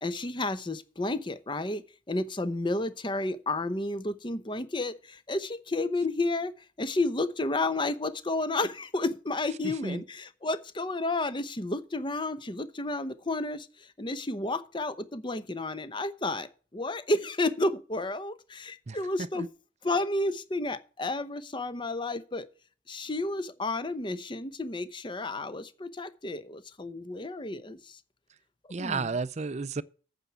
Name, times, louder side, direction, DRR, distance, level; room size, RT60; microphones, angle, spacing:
voice 1, 0.0-19.5 19.8-22.5 22.9-28.0 28.8-29.1, left 2 dB, 25° left, 0.8 m, -31 dB
voice 2, 28.7-29.8, right 4 dB, 35° right, 0.5 m, -32 dB
9.0 x 6.0 x 6.9 m
head